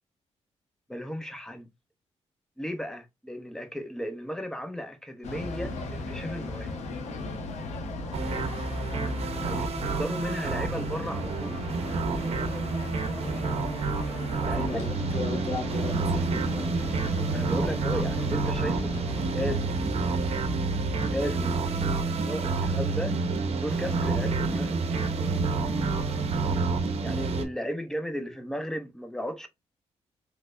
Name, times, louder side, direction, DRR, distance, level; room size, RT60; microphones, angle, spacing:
voice 1, 0.9-1.7 2.6-6.7 9.4-11.6 14.4-14.9 17.3-19.9 21.1-23.1 23.6-24.8 27.0-29.5, equal, 5° left, 0.7 m, -35 dB
sound 1, 5.2-19.6, left 2 dB, 75° left, 0.9 m, -37 dB
sound 2, 8.1-27.5, right 3 dB, 60° right, 0.7 m, -28 dB
voice 2, 14.4-16.8, left 3 dB, 60° left, 1.3 m, -36 dB
3.3 x 3.2 x 2.4 m
cardioid pair, 95°, 12 cm